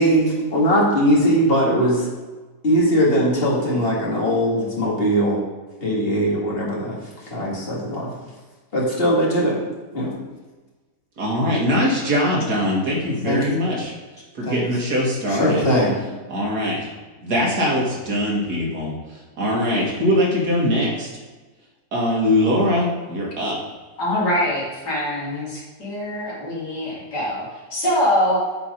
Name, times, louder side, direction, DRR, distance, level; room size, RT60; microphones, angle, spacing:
voice 1, 0.0-2.1 2.6-5.4 5.8-7.0 7.3-8.1 8.7-9.6 9.9-10.1 13.2-13.6 14.4-14.6 15.3-16.0, equal, 35° left, -4 dB, 2.0 m, -20 dB
voice 2, 11.2-13.9 14.4-15.7 16.3-16.8 17.2-18.9 19.4-21.1 21.9-23.6, left 1 dB, 70° right, -3 dB, 2.3 m, -21 dB
voice 3, 24.0-28.4, equal, 80° left, -5 dB, 2.8 m, -23 dB
8.3 x 4.4 x 5.2 m, 1.3 s
omnidirectional pair, 1.8 m